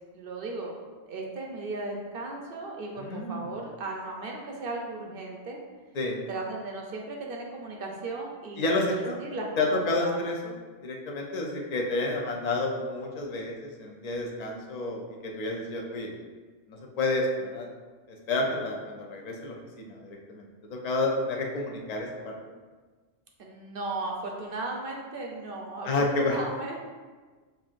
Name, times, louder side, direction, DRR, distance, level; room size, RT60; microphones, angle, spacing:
voice 1, 0.1-0.7 1.1-5.6 6.3-10.2 23.4-26.8, right 2 dB, 60° right, 0 dB, 0.7 m, -36 dB
voice 2, 3.0-3.4 5.9-6.2 8.6-9.2 9.6-10.5 10.8-16.1 16.7-17.7 18.1-22.3 25.8-26.4, left 2 dB, 50° left, 0 dB, 0.5 m, -30 dB
5.6 x 2.5 x 2.5 m, 1.4 s
omnidirectional pair, 1.1 m